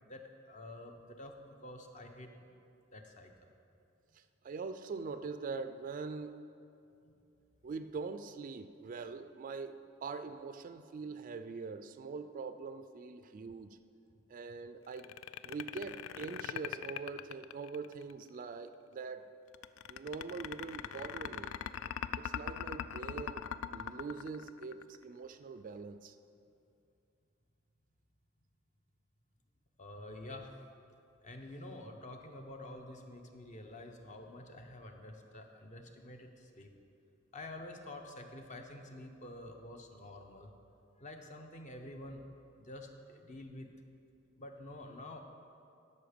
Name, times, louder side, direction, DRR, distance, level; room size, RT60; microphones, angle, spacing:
voice 1, 0.0-2.5 2.9-3.5 7.0-7.1 29.8-30.6 31.2-36.7 37.3-40.5 41.0-42.2 42.6-43.7 44.4-45.2, left 1 dB, 40° left, 4 dB, 0.8 m, -48 dB
voice 2, 4.1-6.4 7.6-13.8 14.3-15.1 15.4-19.4 19.9-21.5 22.2-23.4 23.7-26.2, right 4 dB, 40° right, 10 dB, 0.3 m, -43 dB
sound 1, 14.9-18.1 19.5-25.0, left 9 dB, 75° left, 0.3 m, -40 dB
12.5 x 5.5 x 5.1 m, 2.6 s
head